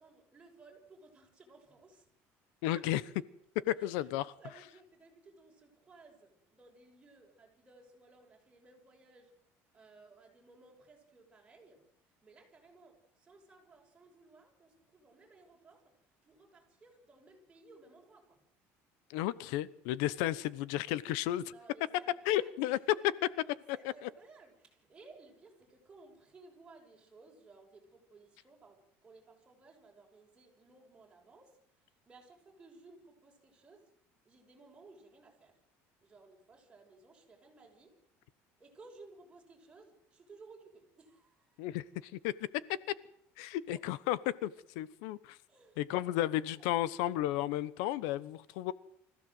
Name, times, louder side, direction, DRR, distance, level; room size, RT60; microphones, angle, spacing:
voice 1, 0.0-2.1 2.5-2.9 3.8-9.3 9.7-18.4 21.4-22.8 23.7-33.9 34.2-35.6 36.0-38.0 38.6-41.7 43.7-43.8 45.5-46.7, right 3 dB, 15° right, 0 dB, 6.7 m, -59 dB
voice 2, 2.6-3.0 3.7-4.3 19.1-21.4 22.3-22.8 23.7-23.8 41.6-42.3 43.4-45.4 45.8-48.7, left 14 dB, 90° left, 19 dB, 1.0 m, -33 dB
25.0 x 16.0 x 7.9 m, 0.73 s
cardioid pair, 155°, 6 cm